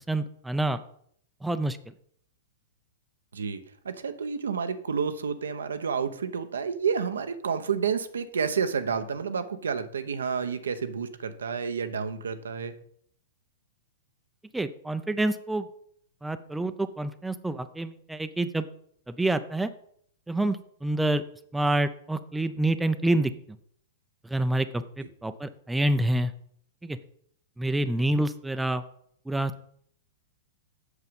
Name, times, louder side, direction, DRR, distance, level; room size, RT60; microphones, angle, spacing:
voice 1, 0.1-0.8 1.4-1.8 14.5-15.7 16.2-18.7 19.1-19.7 20.3-21.2 21.5-23.3 24.2-26.3 26.8-27.0 27.6-28.8 29.3-29.5, right 1 dB, 5° right, 11 dB, 0.6 m, -27 dB
voice 2, 3.3-12.7, right 6 dB, 80° right, 9 dB, 0.8 m, -30 dB
8.2 x 6.7 x 5.3 m, 0.65 s
hypercardioid pair, 110°, 0 cm